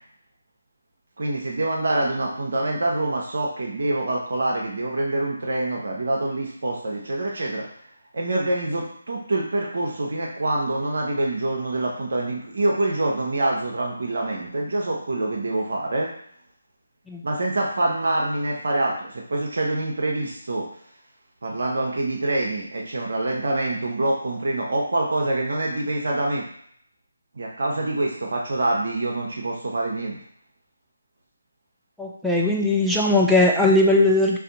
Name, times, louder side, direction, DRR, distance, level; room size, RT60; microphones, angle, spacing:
voice 1, 1.2-7.7 8.1-16.1 17.2-20.7 21.4-26.4 27.3-30.2, right 2 dB, 60° right, -1 dB, 0.8 m, -25 dB
voice 2, 32.0-34.4, left 2 dB, ahead, -3 dB, 0.4 m, -19 dB
2.6 x 2.5 x 3.8 m, 0.65 s
figure-of-eight pair, 155°, 0 cm